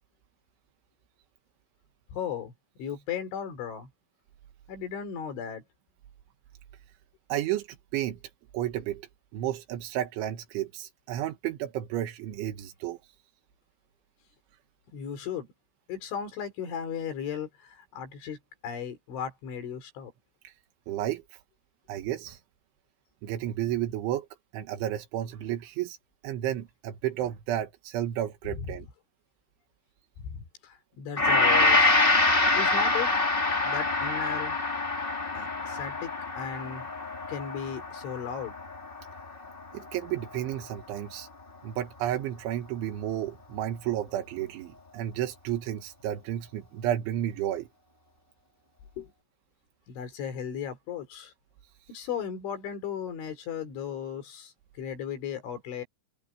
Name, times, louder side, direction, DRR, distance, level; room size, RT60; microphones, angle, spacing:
voice 1, 2.1-2.5 2.8-3.9 4.7-5.6 14.9-15.5 15.9-18.4 18.6-20.1 28.5-28.7 30.2-31.9 32.5-33.1 33.6-34.6 35.3-36.9 37.3-38.5 49.0-49.1 49.9-51.3 51.9-55.8, left 8 dB, 90° left, 6.6 m, -36 dB
voice 2, 7.3-8.2 8.5-13.0 20.4-20.5 20.9-21.2 21.9-22.4 23.2-24.3 24.5-26.0 26.2-28.9 39.7-41.3 41.6-47.7, right 12 dB, 90° right, 4.0 m, -32 dB
Gong, 31.2-39.6 39.9-40.1, left 2 dB, 15° left, 1.8 m, -25 dB
open air
omnidirectional pair, 5.3 m